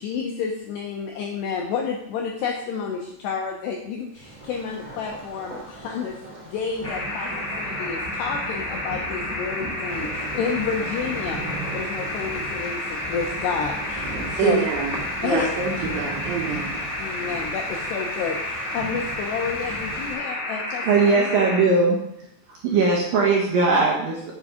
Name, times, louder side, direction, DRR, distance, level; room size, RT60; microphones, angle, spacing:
voice 1, 0.0-6.2 6.5-11.4 11.7-14.6 15.2-15.5 17.0-21.3, left 6 dB, 80° left, 1 dB, 2.4 m, -30 dB
Thunder, 4.1-20.1, right 2 dB, 50° right, 0.5 m, -37 dB
sound 1, 6.8-21.6, left 1 dB, 40° left, 1.5 m, -31 dB
voice 2, 14.4-16.7, right 5 dB, 85° right, -4 dB, 4.1 m, -25 dB
voice 3, 20.8-22.0 22.5-24.3, right 4 dB, 70° right, -3 dB, 2.1 m, -20 dB
8.3 x 8.0 x 4.9 m, 0.78 s
omnidirectional pair, 5.9 m